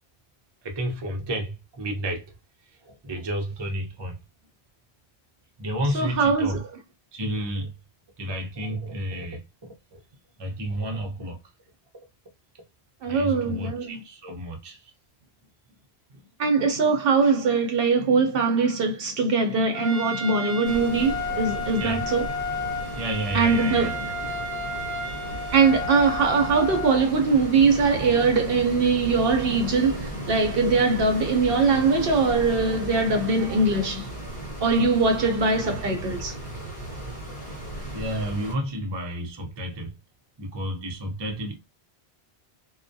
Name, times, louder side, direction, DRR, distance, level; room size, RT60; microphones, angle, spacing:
voice 1, 0.6-2.3 2.8-4.2 5.6-6.6 7.1-7.7 8.2-10.0 10.4-11.4 13.0-14.9 21.0-21.1 21.8-22.2 23.0-23.9 29.7-29.8 33.1-33.2 37.9-39.9 40.4-41.5, right 1 dB, 30° right, 0.5 m, -31 dB
voice 2, 5.9-6.6 13.0-14.0 16.4-22.3 23.3-24.0 25.5-34.1 34.6-36.3, right 4 dB, 65° right, 0.7 m, -22 dB
Trumpet, 19.7-27.1, left 2 dB, 10° left, 0.9 m, -32 dB
sound 1, 20.6-38.5, right 1 dB, 45° left, 1.0 m, -36 dB
2.2 x 2.2 x 2.6 m
omnidirectional pair, 1.1 m